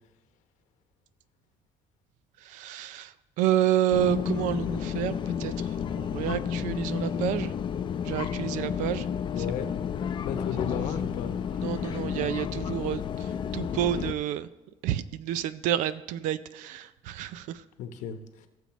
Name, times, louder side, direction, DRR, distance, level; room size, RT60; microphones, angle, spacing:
voice 1, 2.4-5.1 5.4-7.5 8.0-9.1 9.4-9.5 10.7-11.0 11.6-14.5 14.8-17.6, right 11 dB, 85° right, 15 dB, 0.5 m, -29 dB
sound 1, 3.9-14.1, left 8 dB, 40° left, 0.5 m, -31 dB
voice 2, 9.3-9.7 10.2-11.3 17.8-18.5, left 7 dB, 80° left, 8 dB, 1.0 m, -34 dB
17.5 x 7.0 x 3.1 m, 1.0 s
cardioid pair, 135°, 13 cm